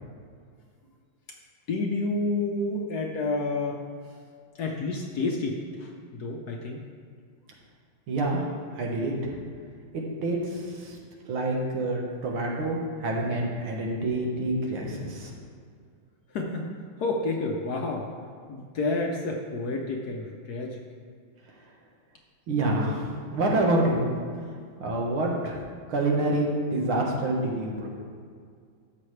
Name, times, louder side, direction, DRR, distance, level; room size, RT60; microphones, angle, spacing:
voice 1, 1.7-3.8 4.1-4.2 4.5-6.9 16.3-16.7 17.0-18.1 18.5-20.8, left 2 dB, 60° left, 1 dB, 1.1 m, -30 dB
voice 2, 8.1-8.5 8.8-9.4 9.9-11.0 11.3-15.3 22.5-24.1 24.8-25.6 25.9-27.9, right 2 dB, 75° right, -1 dB, 2.2 m, -27 dB
12.5 x 7.9 x 3.3 m, 2.1 s
omnidirectional pair, 2.3 m